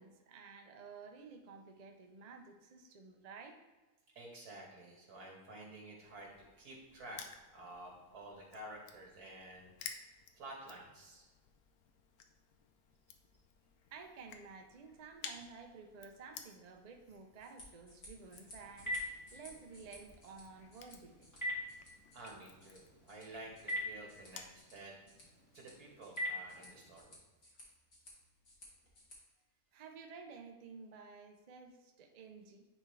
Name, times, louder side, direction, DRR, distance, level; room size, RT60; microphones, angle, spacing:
voice 1, 0.0-3.6 13.9-21.3 27.5-27.6 29.7-32.7, right 5 dB, 45° right, 4 dB, 0.5 m, -53 dB
voice 2, 4.2-6.3 6.6-7.2 7.5-9.7 10.3-11.3 22.1-25.0 25.5-27.2, right 1 dB, 85° right, -1 dB, 2.0 m, -51 dB
Crushing, 6.0-24.6, left 7 dB, 80° left, 1.1 m, -55 dB
sound 1, 17.3-29.2, left 1 dB, 60° left, 2.1 m, -59 dB
Telephone, 18.2-27.0, left 1 dB, 10° left, 1.7 m, -45 dB
9.9 x 3.7 x 3.2 m, 1.2 s
omnidirectional pair, 1.6 m